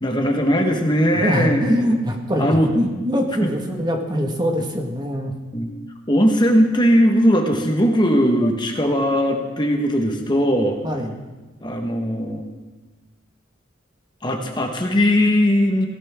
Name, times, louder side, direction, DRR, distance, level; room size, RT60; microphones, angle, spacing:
voice 1, 0.0-1.6 2.4-2.7 3.4-3.5 5.5-5.7 6.1-10.8 11.6-12.4 14.2-15.9, equal, 25° left, 3 dB, 1.4 m, -19 dB
voice 2, 1.1-5.3 10.8-11.1, equal, 20° right, 2 dB, 1.7 m, -23 dB
18.0 x 17.5 x 3.7 m, 1.2 s
head